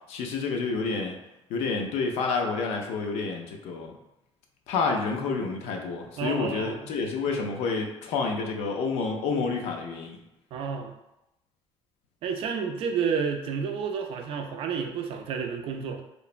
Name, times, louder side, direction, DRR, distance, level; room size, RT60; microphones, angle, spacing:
voice 1, 0.1-1.2 1.5-3.9 4.7-10.2, left 4 dB, 80° left, 2 dB, 0.5 m, -29 dB
voice 2, 6.2-6.9 10.5-10.9 12.2-16.0, right 6 dB, 60° right, 4 dB, 0.4 m, -30 dB
3.1 x 2.1 x 2.4 m, 0.89 s
cardioid pair, 130°, 11 cm